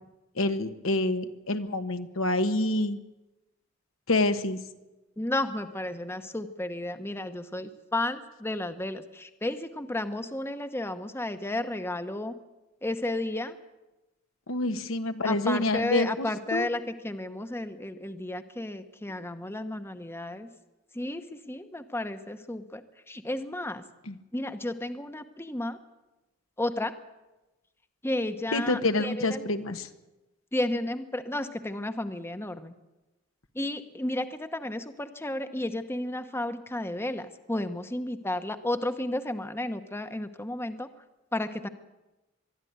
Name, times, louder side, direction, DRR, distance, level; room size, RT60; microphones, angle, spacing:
voice 1, 0.4-3.0 4.1-4.6 14.5-16.7 24.1-24.2 28.5-29.9, left 2 dB, 80° left, 8 dB, 1.3 m, -27 dB
voice 2, 5.2-12.3 12.8-13.6 15.2-20.5 21.0-21.2 21.5-23.8 24.3-25.8 26.6-26.9 28.0-29.4 30.5-32.7 33.6-40.9 41.3-41.7, left 1 dB, 10° left, 9 dB, 0.9 m, -32 dB
22.5 x 12.5 x 9.5 m, 1.0 s
head